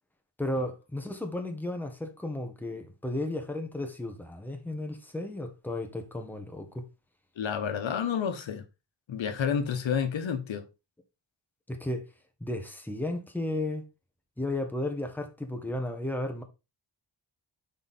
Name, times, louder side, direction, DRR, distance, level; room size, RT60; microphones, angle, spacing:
voice 1, 0.4-6.8 11.7-12.1 12.4-13.8 14.4-16.4, left 1 dB, 5° left, 1.2 m, -34 dB
voice 2, 7.4-8.6 9.1-10.7, left 7 dB, 85° left, 1.1 m, -30 dB
5.7 x 4.1 x 4.1 m
wide cardioid pair, 105°, 45 cm